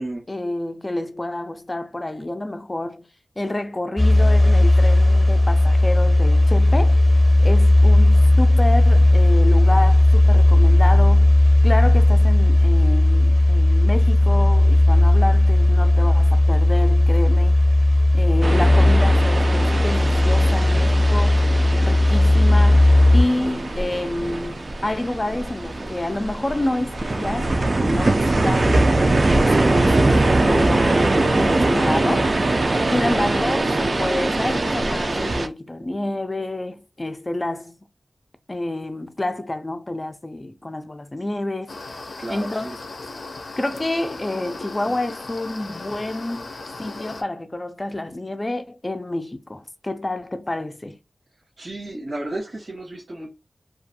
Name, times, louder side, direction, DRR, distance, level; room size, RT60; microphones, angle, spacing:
voice 1, 0.0-3.1 3.4-7.0 7.4-11.3 11.6-17.6 18.1-21.4 21.8-29.0 29.3-32.3 32.9-37.8 38.5-41.8 42.3-42.7 43.6-46.5 46.8-51.0, left 1 dB, 25° left, 0.4 m, -28 dB
sound 1, 4.0-23.2, left 1 dB, ahead, 0.7 m, -15 dB
sound 2, 18.4-35.5, right 2 dB, 50° right, 0.3 m, -22 dB
voice 2, 32.9-33.2 42.2-42.8 51.6-53.3, right 1 dB, 85° right, 0.9 m, -33 dB
sound 3, 41.7-47.2, left 3 dB, 75° left, 0.5 m, -37 dB
2.5 x 2.3 x 2.6 m
wide cardioid pair, 90°, 0 cm